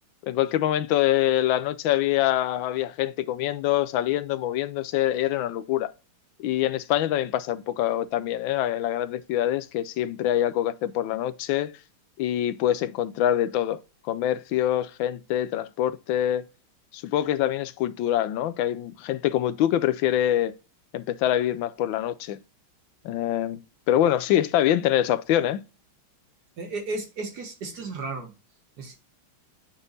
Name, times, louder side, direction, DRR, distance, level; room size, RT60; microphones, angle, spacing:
voice 1, 0.2-5.9 6.4-11.7 12.2-13.8 14.1-16.5 16.9-20.5 20.9-22.4 23.0-23.6 23.9-25.6, left 12 dB, 75° left, 1.3 m, -25 dB
voice 2, 26.6-28.3 28.8-29.0, right 3 dB, 55° right, 1.7 m, -34 dB
8.0 x 3.9 x 3.9 m
omnidirectional pair, 2.2 m